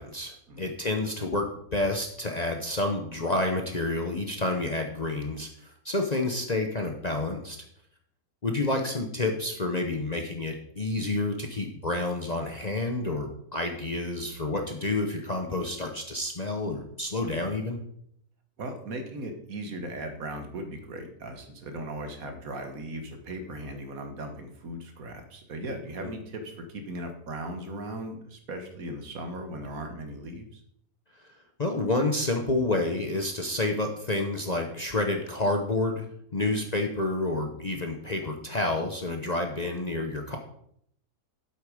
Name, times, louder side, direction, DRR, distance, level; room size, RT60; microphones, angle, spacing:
voice 1, 0.0-7.6 8.4-17.8 26.0-26.1 31.6-36.0 36.3-40.4, left 2 dB, 35° left, 3 dB, 0.8 m, -29 dB
voice 2, 18.6-30.6, right 1 dB, 65° right, 5 dB, 1.7 m, -38 dB
8.1 x 8.0 x 5.0 m, 0.70 s
omnidirectional pair, 1.6 m